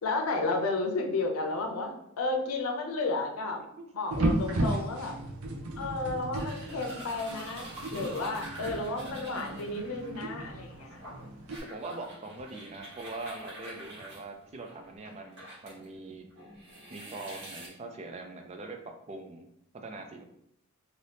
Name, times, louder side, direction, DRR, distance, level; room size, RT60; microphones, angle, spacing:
voice 1, 0.0-3.6 3.9-5.2 5.8-11.0, left 3 dB, 85° left, 3 dB, 0.6 m, -32 dB
sound 1, 4.1-11.6, right 1 dB, 85° right, 0.6 m, -34 dB
sound 2, 6.3-15.9 16.3-17.7, right 1 dB, 55° right, 1.4 m, -46 dB
voice 2, 11.7-16.3 16.9-19.5 19.7-20.2, right 2 dB, 30° right, 4 dB, 0.4 m, -42 dB
2.7 x 2.6 x 3.3 m, 0.75 s
head